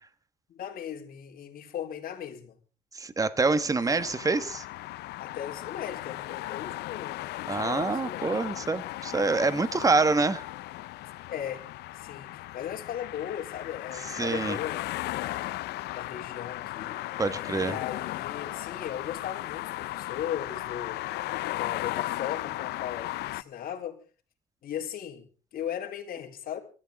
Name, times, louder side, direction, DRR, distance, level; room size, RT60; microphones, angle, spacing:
voice 1, 0.5-2.6 3.7-4.1 5.2-8.4 11.3-11.7 11.9-15.6 15.9-17.0 17.6-21.0 21.5-24.0 24.6-25.2 25.5-26.6, left 9 dB, 60° left, 4.0 m, -37 dB
voice 2, 2.9-4.6 7.5-10.4 14.2-14.6 17.2-17.8, right 3 dB, 20° right, 1.6 m, -26 dB
sound 1, 4.0-23.4, left 17 dB, 80° left, 0.7 m, -36 dB
23.5 x 13.5 x 3.7 m
cardioid pair, 110°, 17 cm